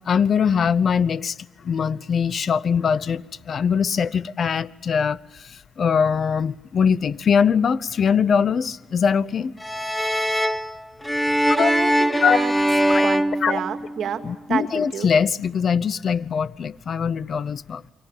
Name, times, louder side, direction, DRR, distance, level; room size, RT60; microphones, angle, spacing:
voice 1, 0.1-1.4 1.6-9.5 11.5-11.7 12.2-12.4 12.9-13.0 13.4-13.6 14.2-17.8, left 6 dB, 50° left, 0.8 m, -22 dB
sound 1, 9.6-14.2, equal, 5° left, 1.4 m, -22 dB
voice 2, 11.5-12.5 12.9-14.2 14.5-15.1, right 8 dB, 65° right, 2.4 m, -29 dB
28.5 x 23.5 x 7.5 m
cardioid pair, 90°, 0 cm